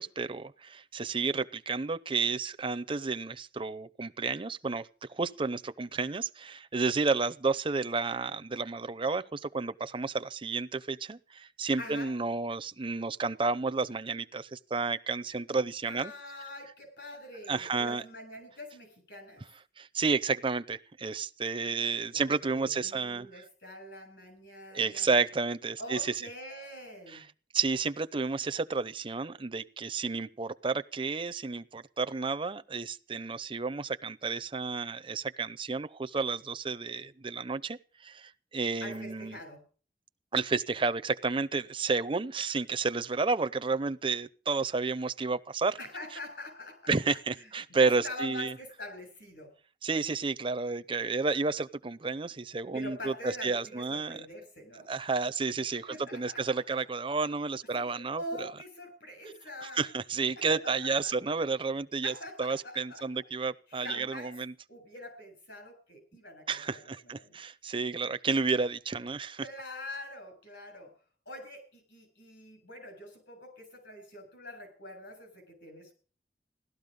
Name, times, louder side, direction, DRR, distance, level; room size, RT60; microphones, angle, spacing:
voice 1, 0.0-16.1 17.5-18.0 19.8-23.4 24.7-26.1 27.1-27.2 27.5-39.4 40.3-45.8 46.9-48.5 49.8-54.2 54.9-58.2 59.8-64.5 66.5-69.5, right 4 dB, 30° right, 12 dB, 0.6 m, -31 dB
voice 2, 11.8-12.1 15.9-19.4 22.1-25.1 25.8-27.3 38.8-39.6 45.8-46.9 47.3-49.5 52.7-54.9 55.7-56.8 57.7-59.8 60.4-61.1 62.0-63.0 63.7-64.3 64.7-67.4 69.4-70.9 71.3-75.9, left 1 dB, 70° left, 6 dB, 7.7 m, -44 dB
16.5 x 13.0 x 5.3 m, 0.39 s
head